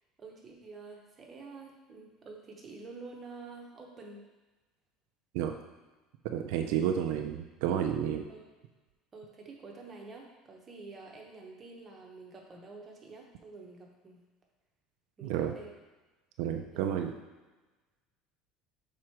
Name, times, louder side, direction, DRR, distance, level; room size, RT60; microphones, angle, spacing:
voice 1, 0.2-4.2 8.3-8.5 9.1-14.2 15.2-15.7 16.7-16.8, right 3 dB, 20° right, -1 dB, 0.8 m, -48 dB
voice 2, 6.2-8.3 15.2-15.5 16.4-17.1, right 9 dB, 65° right, 4 dB, 0.4 m, -31 dB
6.1 x 3.8 x 4.5 m, 1.2 s
cardioid pair, 175°, 0 cm